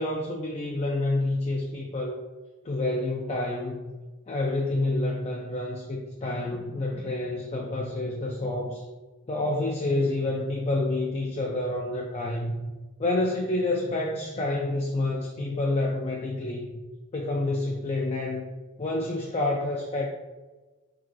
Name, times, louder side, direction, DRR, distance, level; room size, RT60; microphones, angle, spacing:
voice 1, 0.0-2.3 2.6-3.9 4.3-8.8 9.3-12.6 13.0-16.8 17.1-18.4 18.8-20.1, left 2 dB, 30° left, 0 dB, 0.4 m, -28 dB
4.5 x 3.8 x 3.0 m, 1.2 s
head